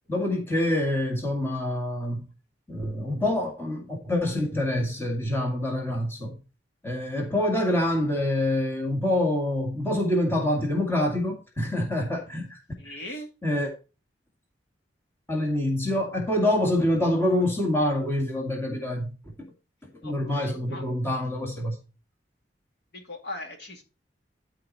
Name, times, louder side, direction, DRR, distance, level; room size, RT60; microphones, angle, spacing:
voice 1, 0.1-2.2 2.7-6.4 6.8-12.6 12.8-13.0 13.4-13.7 15.3-19.1 20.0-21.8, left 1 dB, 15° left, 2.1 m, -26 dB
voice 2, 12.8-13.3 20.0-20.8 22.9-23.8, left 1 dB, 60° left, 2.4 m, -40 dB
12.0 x 4.9 x 4.2 m
head